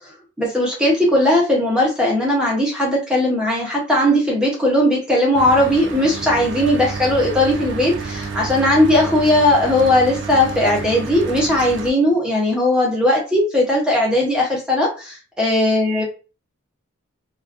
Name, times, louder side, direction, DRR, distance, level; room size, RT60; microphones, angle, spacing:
voice 1, 0.4-16.0, left 1 dB, 5° right, -3 dB, 0.6 m, -18 dB
Mechanical fan, 5.3-11.9, right 4 dB, 55° right, 0.3 m, -30 dB
2.3 x 2.2 x 2.4 m, 0.34 s
head